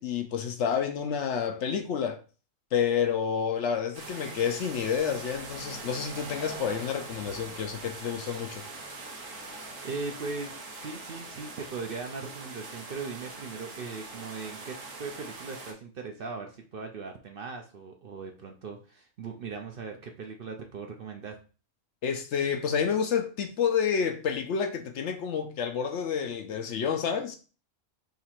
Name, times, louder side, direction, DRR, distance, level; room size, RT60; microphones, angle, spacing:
voice 1, 0.0-2.2 2.7-8.6 22.0-27.4, left 7 dB, 70° left, 0.9 m, -29 dB
sound 1, 3.9-15.7, right 3 dB, 75° right, 1.4 m, -42 dB
voice 2, 9.5-21.4, right 4 dB, 55° right, 0.7 m, -39 dB
3.9 x 2.9 x 4.3 m
omnidirectional pair, 1.4 m